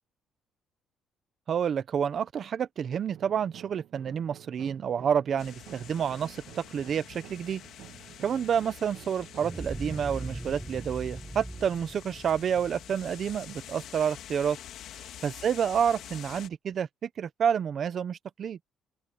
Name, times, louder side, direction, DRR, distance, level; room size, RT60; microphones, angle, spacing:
voice 1, 1.5-7.6 8.2-14.6 15.2-18.6, right 8 dB, 35° right, 0.9 m, -29 dB
sound 1, 3.1-11.9, right 12 dB, 60° right, 1.6 m, -51 dB
sound 2, 5.4-16.5, left 11 dB, 60° left, 2.5 m, -47 dB
sound 3, 9.4-14.2, right 1 dB, 5° right, 0.9 m, -40 dB
open air
cardioid pair, 175°, 0 cm